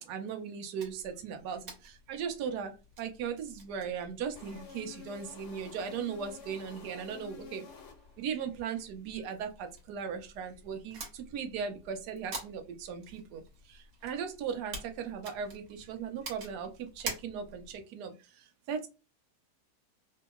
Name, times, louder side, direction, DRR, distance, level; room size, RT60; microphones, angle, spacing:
voice 1, 0.0-7.6 8.2-18.9, right 7 dB, 75° right, 6 dB, 1.1 m, -38 dB
sound 1, 0.8-17.8, right 3 dB, 60° right, 1.4 m, -48 dB
sound 2, 4.4-8.4, left 6 dB, 85° left, 1.3 m, -50 dB
2.9 x 2.7 x 2.2 m, 0.30 s
omnidirectional pair, 1.8 m